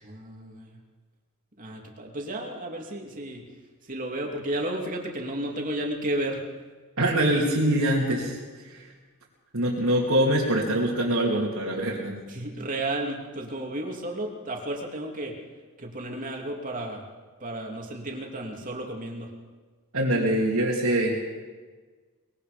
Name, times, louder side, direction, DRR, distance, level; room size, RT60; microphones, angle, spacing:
voice 1, 0.0-0.8 1.6-3.4 3.8-6.4 12.3-15.4 15.8-17.1 17.4-19.3, right 1 dB, 35° right, 1 dB, 3.0 m, -33 dB
voice 2, 7.0-8.8 9.5-12.2 19.9-21.2, right 1 dB, 70° right, -5 dB, 3.2 m, -24 dB
23.0 x 21.5 x 5.3 m, 1.4 s
head